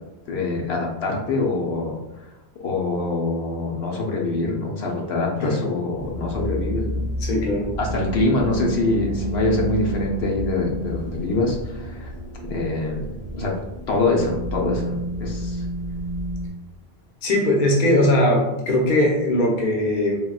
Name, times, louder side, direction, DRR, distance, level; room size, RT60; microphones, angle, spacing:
voice 1, 0.3-2.3 2.6-7.1 7.8-12.1 12.5-13.5 13.9-15.6, left 2 dB, 80° left, -1 dB, 0.9 m, -24 dB
sound 1, 6.0-16.5, equal, 45° right, 0.6 m, -30 dB
voice 2, 7.2-7.7 17.2-20.2, left 1 dB, 55° left, -1 dB, 0.8 m, -20 dB
3.5 x 2.3 x 2.3 m, 0.98 s
omnidirectional pair, 1.1 m